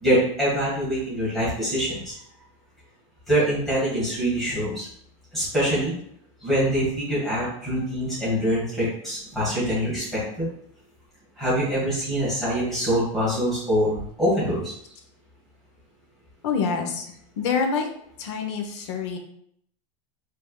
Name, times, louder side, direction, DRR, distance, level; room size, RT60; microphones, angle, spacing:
voice 1, 0.0-2.1 3.3-4.9 5.3-5.9 6.4-10.5 11.4-14.7, equal, ahead, -10 dB, 1.6 m, -24 dB
voice 2, 16.4-17.9 18.2-19.2, left 5 dB, 60° left, 4 dB, 0.8 m, -26 dB
5.4 x 3.5 x 2.3 m, 0.69 s
supercardioid pair, 180°, 17 cm